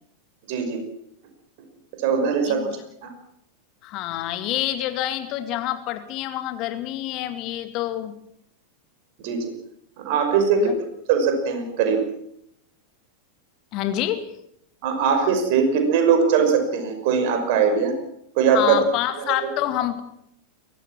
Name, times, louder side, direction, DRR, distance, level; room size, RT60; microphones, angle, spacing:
voice 1, 0.5-0.8 2.0-2.6 3.0-3.1 9.2-9.5 10.0-12.0 14.8-17.9 18.4-18.8 19.3-19.5, right 6 dB, 50° right, 6 dB, 5.8 m, -21 dB
voice 2, 3.8-8.1 10.5-10.8 13.7-14.3 18.5-20.0, left 12 dB, 40° left, 10 dB, 2.1 m, -27 dB
23.0 x 18.5 x 7.6 m, 0.74 s
figure-of-eight pair, 90°, 0 cm